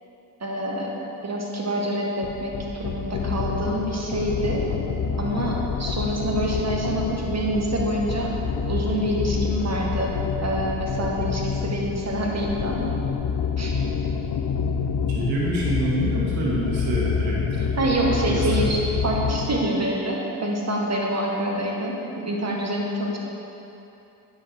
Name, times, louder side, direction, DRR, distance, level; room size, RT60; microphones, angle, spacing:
voice 1, 0.4-0.9 1.2-4.7 5.2-8.3 8.7-10.1 10.4-13.0 13.6-13.7 17.8-23.2, right 1 dB, 35° right, -2 dB, 1.9 m, -26 dB
sound 1, 2.2-19.7, left 6 dB, 50° left, 0.7 m, -27 dB
voice 2, 15.1-17.6 18.1-18.7, right 1 dB, 80° right, -5 dB, 2.2 m, -26 dB
9.2 x 6.8 x 4.5 m, 2.9 s
hypercardioid pair, 50°, 47 cm